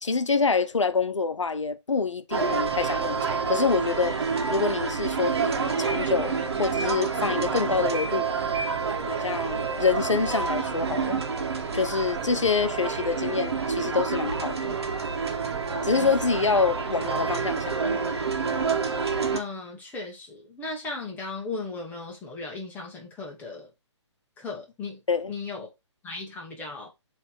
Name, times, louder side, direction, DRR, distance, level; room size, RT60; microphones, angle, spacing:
voice 1, 0.0-4.1 4.5-8.3 9.0-11.2 11.7-14.8 15.8-18.0 25.1-25.3, left 4 dB, 75° left, 0.9 m, -26 dB
sound 1, 2.3-19.4, right 5 dB, 60° right, 1.6 m, -28 dB
voice 2, 19.3-23.7 24.4-25.0 25.3-25.7 26.0-26.9, left 3 dB, 10° left, 1.7 m, -36 dB
7.9 x 3.4 x 4.6 m
figure-of-eight pair, 140°, 16 cm